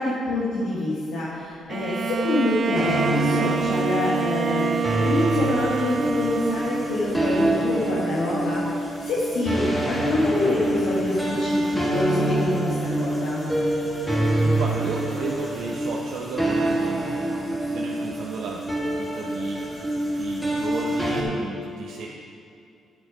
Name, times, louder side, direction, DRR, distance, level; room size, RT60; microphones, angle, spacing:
voice 1, 0.0-13.5, left 2 dB, 85° left, -8 dB, 1.9 m, -26 dB
Bowed string instrument, 1.7-7.4, right 5 dB, 50° right, 0.5 m, -28 dB
sound 1, 2.7-21.2, right 1 dB, 5° left, 1.9 m, -26 dB
voice 2, 14.4-17.0 17.5-19.6 19.9-22.1, right 3 dB, 75° right, -2 dB, 0.9 m, -34 dB
9.6 x 9.1 x 4.9 m, 2.5 s
cardioid pair, 90°, 0 cm